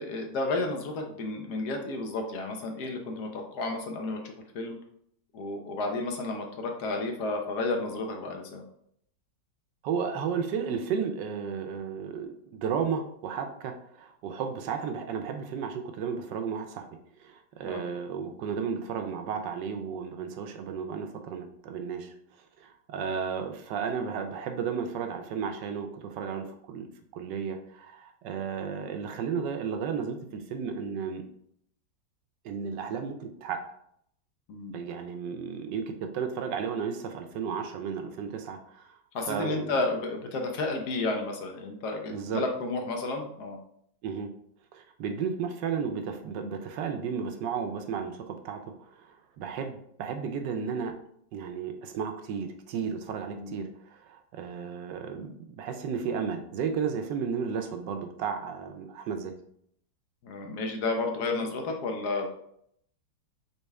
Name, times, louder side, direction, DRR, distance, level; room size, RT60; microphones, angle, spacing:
voice 1, 0.0-4.8 5.3-8.6 17.7-17.8 34.5-34.7 39.1-43.6 53.3-53.6 60.2-62.3, left 3 dB, 65° left, 3 dB, 1.2 m, -32 dB
voice 2, 9.8-16.9 17.2-22.1 22.6-31.2 32.4-33.6 34.7-39.0 39.3-39.8 42.1-42.4 44.0-44.3 44.7-50.9 51.3-59.3, right 6 dB, 75° right, 6 dB, 1.2 m, -33 dB
4.2 x 3.7 x 3.4 m, 0.69 s
omnidirectional pair, 2.0 m